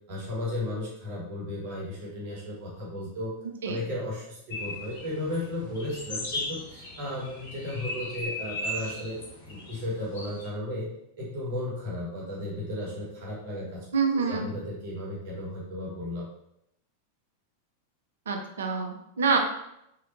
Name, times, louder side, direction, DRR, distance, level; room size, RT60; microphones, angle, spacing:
voice 1, 0.1-3.3 3.6-9.2 9.4-10.9 11.2-13.8 14.1-16.2, left 1 dB, 50° right, -4 dB, 1.2 m, -34 dB
sound 1, 4.5-10.5, left 1 dB, 55° left, 0.8 m, -37 dB
voice 2, 13.9-14.4 18.3-19.4, right 5 dB, 65° right, 3 dB, 0.4 m, -26 dB
3.2 x 2.4 x 2.9 m, 0.80 s
figure-of-eight pair, 90°, 0 cm